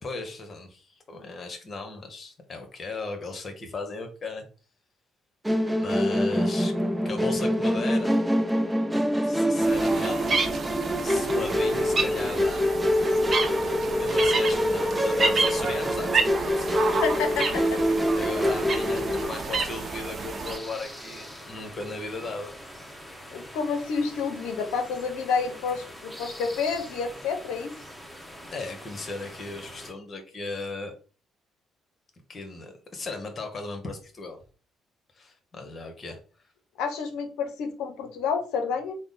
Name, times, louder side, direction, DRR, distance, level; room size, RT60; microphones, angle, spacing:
voice 1, 0.0-4.4 5.8-6.7 7.0-8.2 9.2-10.6 11.0-12.7 13.8-16.9 18.1-22.5 28.5-30.9 32.3-34.4 35.2-36.2, left 3 dB, 45° left, 5 dB, 1.2 m, -36 dB
Musical instrument, 5.4-19.2, equal, 10° right, 0.6 m, -25 dB
sound 1, 9.6-20.6, right 4 dB, 45° right, 0.7 m, -30 dB
sound 2, 16.6-29.9, equal, 5° left, 1.3 m, -44 dB
voice 2, 17.0-17.8 23.3-27.7 36.8-39.0, left 5 dB, 75° left, 6 dB, 0.7 m, -29 dB
3.5 x 2.1 x 3.9 m, 0.38 s
hypercardioid pair, 55°, 0 cm